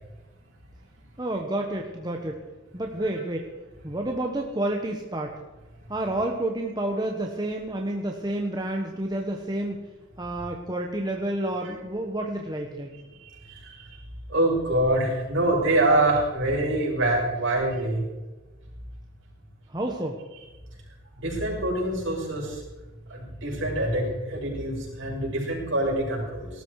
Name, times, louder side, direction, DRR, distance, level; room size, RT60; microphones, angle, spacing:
voice 1, 1.2-2.4 2.7-3.5 3.8-5.3 5.9-9.8 10.2-12.9 19.7-20.2, right 1 dB, 20° right, 1 dB, 1.2 m, -29 dB
voice 2, 14.3-18.0 21.2-22.6 23.1-26.5, right 1 dB, 60° right, -4 dB, 6.6 m, -25 dB
18.5 x 13.0 x 4.8 m, 1.1 s
head